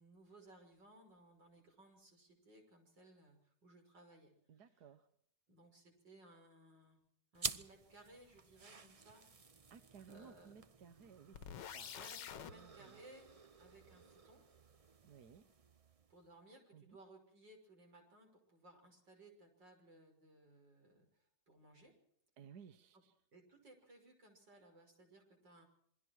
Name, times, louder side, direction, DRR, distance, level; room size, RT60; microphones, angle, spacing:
voice 1, 0.0-4.3 5.5-7.0 7.3-9.2 10.1-10.5 11.9-14.4 16.1-21.9 23.3-25.7, right 1 dB, 85° right, 3 dB, 6.6 m, -62 dB
voice 2, 4.5-5.1 8.8-9.0 9.7-11.5 11.7-12.0 12.3-13.0 15.0-15.5 16.7-17.0 22.4-23.1, right 7 dB, 65° right, 10 dB, 1.6 m, -59 dB
sound 1, 7.3-16.3, right 4 dB, 40° right, 0.5 m, -50 dB
sound 2, 11.3-12.5, left 8 dB, 90° left, 1.8 m, -47 dB
27.5 x 22.5 x 4.6 m, 0.68 s
omnidirectional pair, 1.9 m